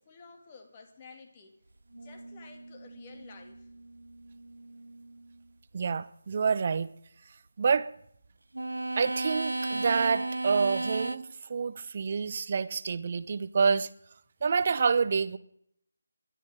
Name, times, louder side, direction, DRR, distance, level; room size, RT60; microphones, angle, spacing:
voice 1, 0.0-1.6 1.9-3.7, left 4 dB, 25° left, 2.6 m, -52 dB
sound 1, 1.9-5.4 8.5-11.2, right 2 dB, 80° right, 0.7 m, -36 dB
voice 2, 5.7-6.9 7.6-7.9 9.0-13.9 14.4-15.4, right 5 dB, 40° right, 0.9 m, -27 dB
28.0 x 12.0 x 3.9 m
figure-of-eight pair, 160°, 0 cm